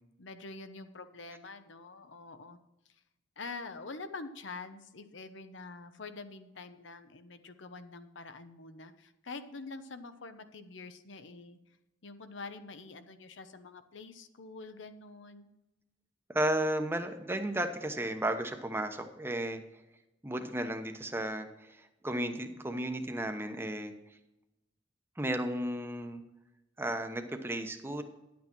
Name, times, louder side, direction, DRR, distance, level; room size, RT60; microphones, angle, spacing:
voice 1, 0.2-2.6 3.4-11.6 12.0-15.5, left 3 dB, 80° left, 10 dB, 0.9 m, -46 dB
voice 2, 16.3-19.6 20.2-23.9 25.2-26.2 26.8-28.0, right 1 dB, 15° right, 6 dB, 0.9 m, -34 dB
11.0 x 8.4 x 4.5 m, 0.96 s
head